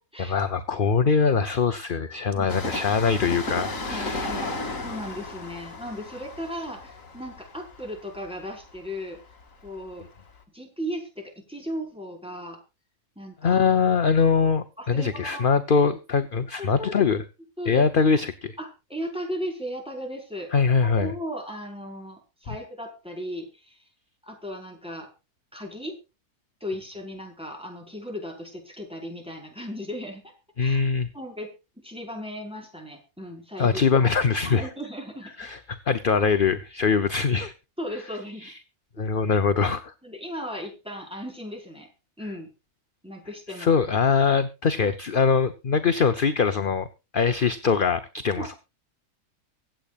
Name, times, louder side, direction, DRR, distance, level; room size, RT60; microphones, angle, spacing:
voice 1, 0.2-4.3 13.4-17.2 17.7-18.6 20.5-21.1 30.6-31.1 33.6-34.7 35.4-37.5 38.4-38.6 39.0-39.9 43.5-46.9 47.1-48.5, left 5 dB, 40° left, 10 dB, 0.9 m, -22 dB
Train, 2.5-9.9 10.2-10.3, left 2 dB, 55° left, 2.5 m, -34 dB
voice 2, 3.9-4.5 4.8-9.2 9.6-10.1 10.5-12.6 13.2-13.6 14.8-15.5 16.6-17.0 17.6-17.8 18.6-20.5 20.8-23.8 24.2-25.1 25.5-25.9 26.6-30.3 30.6-30.8 31.1-31.5 31.8-34.1 34.4-35.5 37.8-38.5 39.0-39.1 40.0-41.9 42.2-42.5 43.0-43.7 48.3-48.6, equal, 5° right, 1 dB, 4.8 m, -36 dB
24.5 x 8.7 x 2.4 m, 0.28 s
omnidirectional pair, 1.6 m